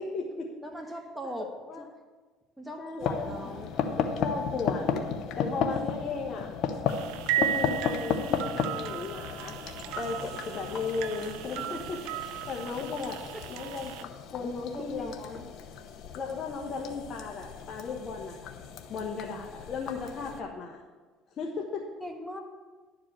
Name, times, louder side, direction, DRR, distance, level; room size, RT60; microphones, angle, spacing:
voice 1, 0.0-0.5 1.2-1.8 2.8-3.4 3.9-5.0 5.4-6.5 7.4-9.6 9.9-13.2 13.5-15.4 16.1-18.6 18.9-20.8 21.4-21.8, left 4 dB, 50° left, -1 dB, 1.3 m, -36 dB
voice 2, 0.6-1.5 1.8-1.9 2.6-3.7 13.3-13.4 14.4-15.4 22.0-22.4, equal, 5° right, 2 dB, 1.3 m, -40 dB
sound 1, 3.0-20.4, left 6 dB, 65° left, 0.9 m, -34 dB
sound 2, 6.9-14.0, right 12 dB, 80° right, 0.4 m, -35 dB
12.0 x 4.7 x 7.4 m, 1.3 s
supercardioid pair, 85°, 0 cm